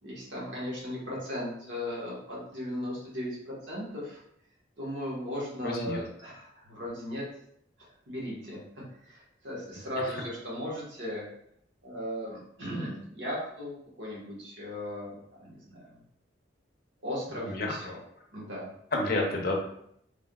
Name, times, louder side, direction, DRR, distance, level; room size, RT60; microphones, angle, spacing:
voice 1, 0.0-4.2 4.8-7.2 7.8-11.2 11.8-16.0 17.0-18.0 18.3-18.7, equal, 80° right, -6 dB, 1.2 m, -37 dB
voice 2, 5.6-6.0 17.3-17.7 18.9-19.6, left 2 dB, 55° left, 0 dB, 0.6 m, -29 dB
3.4 x 2.4 x 2.2 m, 0.71 s
head